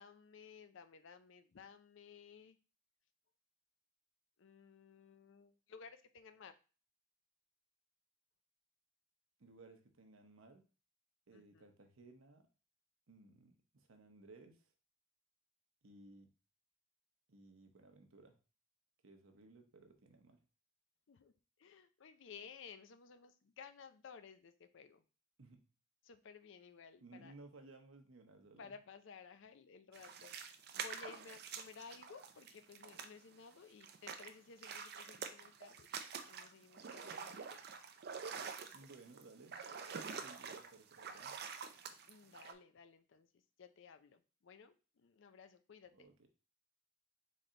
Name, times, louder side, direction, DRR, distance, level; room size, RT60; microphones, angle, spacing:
voice 1, 0.0-2.6 4.4-6.6 11.3-11.7 21.1-21.3 21.6-25.0 26.0-27.3 28.6-35.9 36.3-37.4 42.1-43.3 43.6-45.9, left 6 dB, 65° left, 10 dB, 0.5 m, -56 dB
voice 2, 9.4-10.7 11.3-12.5 13.1-14.7 15.8-16.3 17.3-18.4 19.0-20.4 25.4-25.7 27.0-28.8 38.7-39.6 40.1-41.4 45.9-46.3, right 3 dB, 85° right, 5 dB, 0.9 m, -60 dB
sound 1, 29.9-33.5 33.8-42.5, right 6 dB, 55° right, 0.5 m, -47 dB
4.2 x 3.3 x 3.8 m, 0.35 s
head